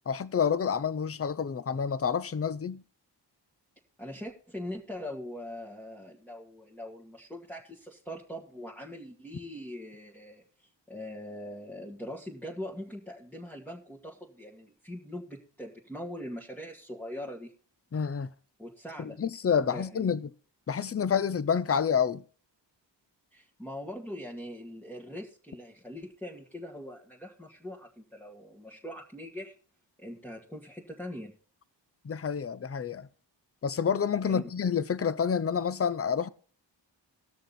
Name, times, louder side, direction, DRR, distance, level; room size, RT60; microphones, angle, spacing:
voice 1, 0.1-2.8 17.9-18.3 19.0-20.3 20.7-22.2 32.0-33.1 33.6-36.3, left 7 dB, 35° left, 0.6 m, -28 dB
voice 2, 4.0-10.4 10.9-17.5 18.6-19.2 19.6-20.1 23.3-29.5 30.0-31.3 34.2-34.4, left 1 dB, 5° left, 2.0 m, -42 dB
19.0 x 6.5 x 4.1 m
wide cardioid pair, 85°, 44 cm